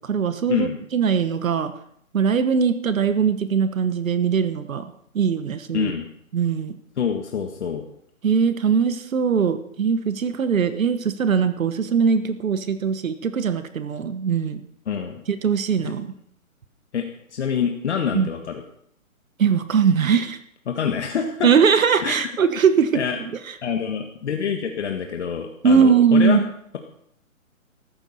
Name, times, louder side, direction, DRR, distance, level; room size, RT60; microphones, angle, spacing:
voice 1, 0.0-1.7 2.1-4.9 5.1-5.9 6.3-6.8 8.2-14.6 15.3-16.1 18.1-18.3 19.4-20.4 21.4-23.0 25.6-26.5, right 6 dB, 70° right, 11 dB, 1.3 m, -20 dB
voice 2, 5.7-6.1 7.0-7.8 14.9-15.2 15.8-15.9 16.9-17.0 17.3-18.6 20.7-21.5 22.0-22.3 22.9-23.2 23.6-26.4, left 7 dB, 55° left, 4 dB, 1.6 m, -26 dB
14.5 x 13.5 x 4.2 m, 0.67 s
hypercardioid pair, 160°, 41 cm